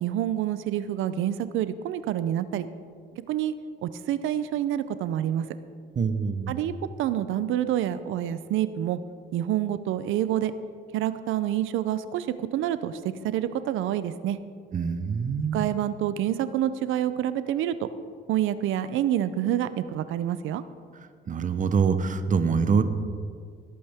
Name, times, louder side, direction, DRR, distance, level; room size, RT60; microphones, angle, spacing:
voice 1, 0.0-2.7 3.1-3.5 3.8-5.5 6.5-9.0 9.3-10.5 10.9-14.4 15.5-17.9 18.3-20.6, right 11 dB, 85° right, 13 dB, 0.5 m, -27 dB
voice 2, 6.0-6.6 14.7-15.7 21.3-22.8, right 5 dB, 40° right, 10 dB, 0.8 m, -25 dB
17.5 x 8.5 x 3.5 m, 2.1 s
cardioid pair, 90°, 20 cm